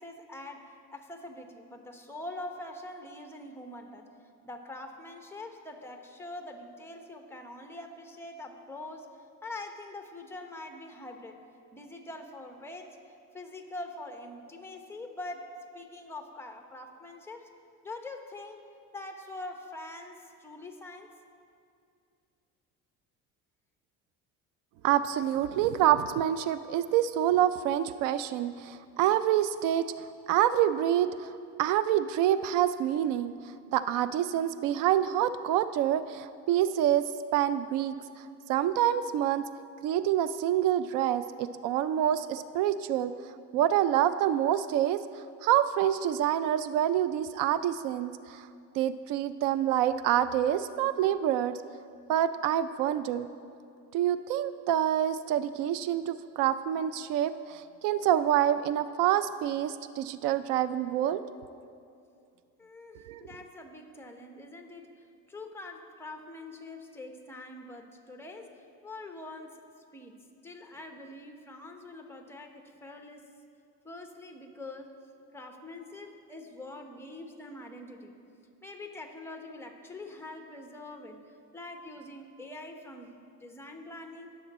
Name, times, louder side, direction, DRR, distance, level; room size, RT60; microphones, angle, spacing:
voice 1, 0.0-4.1 4.4-9.1 9.4-11.4 11.7-13.0 13.3-15.5 15.7-17.5 17.8-18.6 18.9-21.1 62.6-69.6 69.9-73.3 73.8-74.9 75.3-78.2 78.6-84.3, left 2 dB, 10° left, 4 dB, 1.0 m, -44 dB
voice 2, 24.8-29.8 30.3-31.3 31.6-33.3 33.7-37.9 38.5-39.4 39.8-43.1 43.5-45.0 45.4-48.5 48.8-51.6 52.1-53.3 53.9-61.2 62.9-63.2, right 11 dB, 90° right, 13 dB, 0.5 m, -27 dB
18.5 x 7.1 x 4.2 m, 2.4 s
cardioid pair, 125°, 31 cm